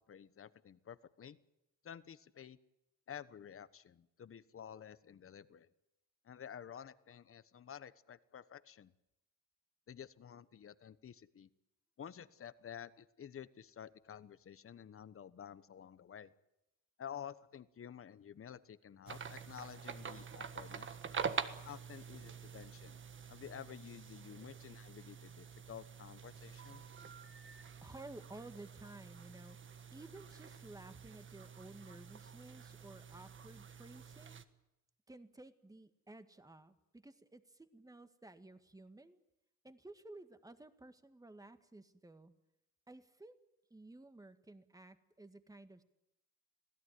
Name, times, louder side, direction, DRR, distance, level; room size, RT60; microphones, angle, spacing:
voice 1, 0.1-1.4 1.8-2.6 3.1-5.7 6.2-8.9 9.9-11.5 12.0-16.3 17.0-21.0 21.6-23.0 23.3-26.8, left 9 dB, 45° left, 15 dB, 1.1 m, -51 dB
sound 1, 19.1-34.4, right 6 dB, 40° right, 1.5 m, -47 dB
voice 2, 27.8-34.4 35.1-39.2 39.6-42.3 42.9-43.4 43.7-45.8, right 2 dB, 10° right, 10 dB, 1.9 m, -55 dB
26.0 x 17.0 x 9.5 m, 0.89 s
cardioid pair, 90°, 30 cm